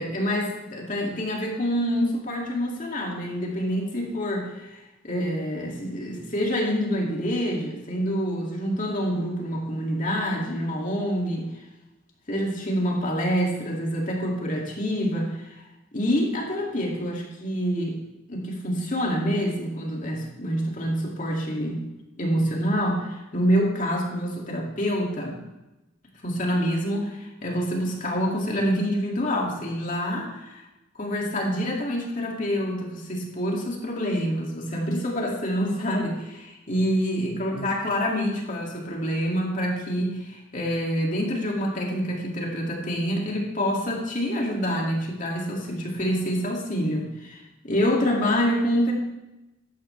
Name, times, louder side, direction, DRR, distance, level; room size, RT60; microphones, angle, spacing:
voice 1, 0.0-11.5 12.3-15.6 15.9-18.0 18.3-21.8 22.2-25.4 26.2-30.6 31.0-48.9, equal, 40° left, -2 dB, 2.5 m, -27 dB
14.5 x 11.0 x 3.4 m, 0.99 s
head